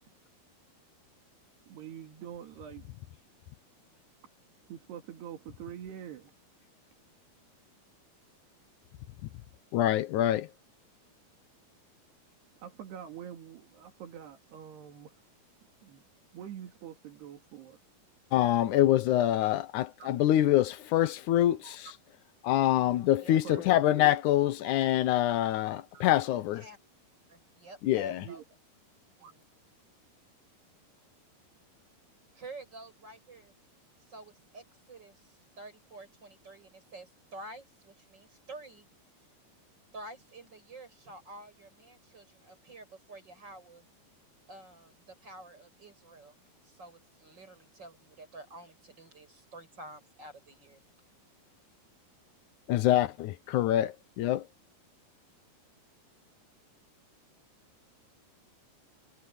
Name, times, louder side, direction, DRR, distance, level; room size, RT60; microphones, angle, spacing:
voice 1, 1.7-2.8 4.7-6.3 12.6-15.1 15.8-16.0 16.3-17.8 20.0-20.1 21.6-21.7 23.4-24.0 24.6-24.7 25.9-26.1 28.2-28.4 29.2-29.3, right 9 dB, 85° right, 4.7 m, -45 dB
voice 2, 9.7-10.5 18.3-21.9 22.4-26.7 27.8-28.2 52.7-54.4, left 13 dB, 75° left, 1.9 m, -25 dB
voice 3, 27.3-28.4 29.2-29.4 32.3-33.5 34.1-38.9 39.9-43.8 44.5-46.3 46.6-50.8, right 2 dB, 25° right, 8.0 m, -49 dB
omnidirectional pair, 4.6 m